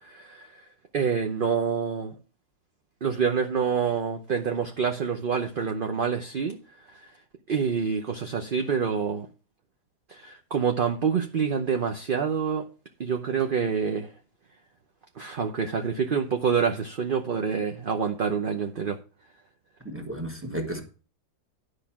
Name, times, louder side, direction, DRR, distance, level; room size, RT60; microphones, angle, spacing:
voice 1, 0.1-0.5 0.9-2.1 3.0-6.6 7.5-9.3 10.1-12.6 13.0-14.1 15.2-19.0, right 6 dB, 45° right, 4 dB, 0.7 m, -27 dB
voice 2, 19.8-20.8, right 1 dB, 10° right, 6 dB, 1.5 m, -33 dB
10.5 x 5.0 x 5.9 m, 0.35 s
omnidirectional pair, 1.7 m